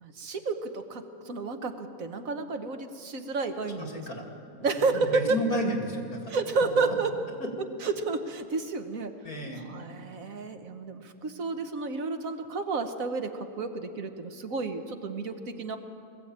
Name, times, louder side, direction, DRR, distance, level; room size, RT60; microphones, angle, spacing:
voice 1, 0.0-3.9 4.6-5.4 6.3-7.1 7.8-9.1 9.7-15.8, right 4 dB, 70° right, 6 dB, 1.5 m, -31 dB
voice 2, 3.8-4.3 4.6-6.3 6.6-6.9 9.2-9.6, equal, 75° left, 2 dB, 3.0 m, -32 dB
20.5 x 14.5 x 8.8 m, 2.5 s
omnidirectional pair, 1.5 m